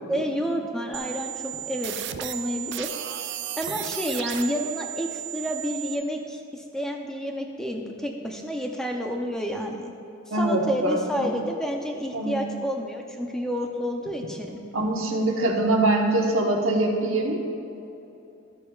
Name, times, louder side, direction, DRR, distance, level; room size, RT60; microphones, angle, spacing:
voice 1, 0.1-2.9 3.2-3.3 3.6-9.9 10.4-14.6, equal, 5° left, 1 dB, 0.5 m, -30 dB
sound 1, 0.9-5.9, right 13 dB, 55° right, 0.4 m, -34 dB
voice 2, 10.3-11.4 12.1-12.4 14.7-17.4, right 2 dB, 75° right, 1 dB, 1.1 m, -23 dB
13.0 x 8.2 x 2.4 m, 2.9 s
head